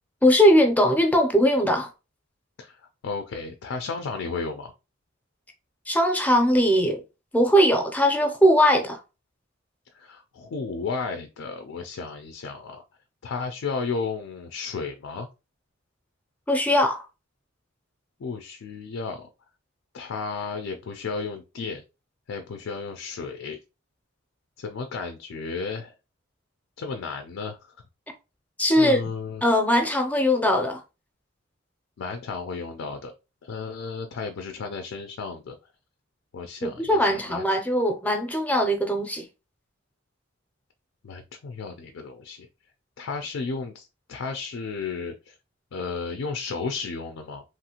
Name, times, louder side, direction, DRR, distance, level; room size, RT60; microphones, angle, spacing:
voice 1, 0.2-1.9 5.9-7.0 7.3-9.0 16.5-17.1 28.6-29.1 29.4-30.8 36.6-39.3, equal, 10° left, 0.5 m, -20 dB
voice 2, 2.6-4.7 9.9-12.8 13.2-15.3 18.2-19.3 19.9-21.8 22.3-23.6 24.6-25.9 26.8-27.6 28.8-29.4 32.0-33.1 33.4-35.6 36.3-37.4 41.0-42.5 43.0-45.3 45.7-47.4, left 4 dB, 75° left, 0.4 m, -33 dB
3.0 x 2.4 x 2.8 m
head